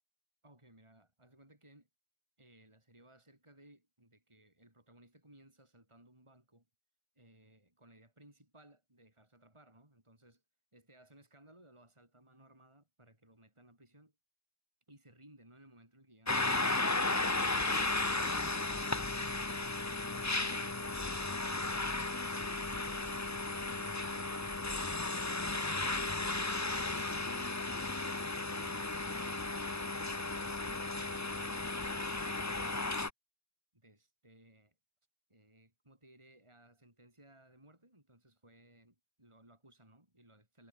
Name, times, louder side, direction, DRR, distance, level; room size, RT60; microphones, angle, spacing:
voice 1, 0.4-1.9 2.4-6.7 7.2-10.4 10.7-14.2 14.9-16.8 33.7-34.8 35.3-40.7, right 1 dB, 15° right, 5.4 m, -62 dB
sound 1, 16.3-33.1, left 2 dB, 15° left, 0.6 m, -35 dB
omnidirectional pair, 1.6 m